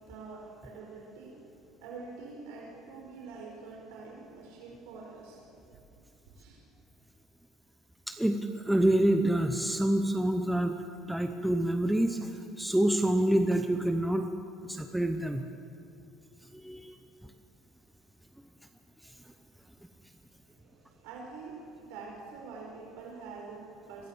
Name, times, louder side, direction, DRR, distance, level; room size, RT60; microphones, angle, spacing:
voice 1, 0.0-5.5 6.4-6.6 20.4-24.1, right 4 dB, 85° right, -1 dB, 4.5 m, -46 dB
voice 2, 8.1-10.8 11.1-12.3 12.6-14.3 14.6-15.4 16.5-17.0, right 1 dB, 5° right, 6 dB, 0.8 m, -27 dB
23.0 x 16.0 x 7.2 m, 2.5 s
cardioid pair, 150°, 0 cm